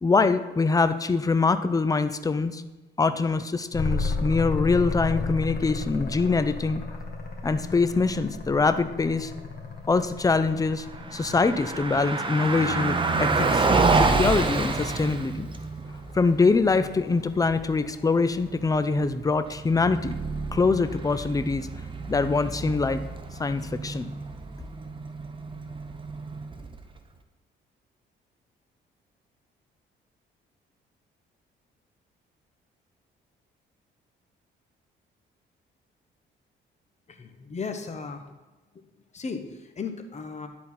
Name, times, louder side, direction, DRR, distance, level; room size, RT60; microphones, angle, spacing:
voice 1, 0.0-2.6 3.0-6.8 7.4-9.3 9.9-10.9 11.1-13.7 13.9-15.5 16.1-20.1 20.5-21.7 22.1-23.0 23.4-24.1, left 4 dB, 20° left, 11 dB, 0.5 m, -24 dB
sound 1, 3.7-12.3 14.5-19.1, left 3 dB, 55° left, 1.9 m, -34 dB
Car passing by, 10.9-27.0, right 3 dB, 25° right, 0.8 m, -29 dB
voice 2, 37.1-38.3 39.1-40.5, left 4 dB, 35° left, 6 dB, 1.1 m, -35 dB
11.0 x 4.2 x 5.7 m, 1.2 s
cardioid pair, 90°, 20 cm